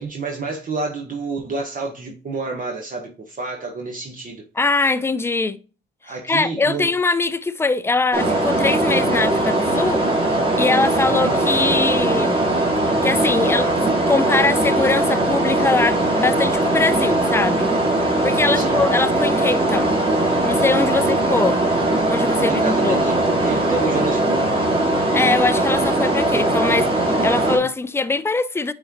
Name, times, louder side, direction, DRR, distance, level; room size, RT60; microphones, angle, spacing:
voice 1, 0.0-4.4 6.0-6.9 18.5-18.8 20.9-21.0 22.3-24.7, right 4 dB, 45° right, 1.2 m, -29 dB
voice 2, 4.6-5.6 6.2-10.0 10.6-12.4 13.0-13.8 14.1-17.7 18.2-19.9 20.4-21.6 22.1-23.0 25.1-28.7, left 3 dB, 10° left, 0.4 m, -22 dB
sound 1, 8.1-27.6, right 1 dB, 25° right, 2.5 m, -20 dB
8.5 x 3.8 x 2.9 m
cardioid pair, 90°, 20 cm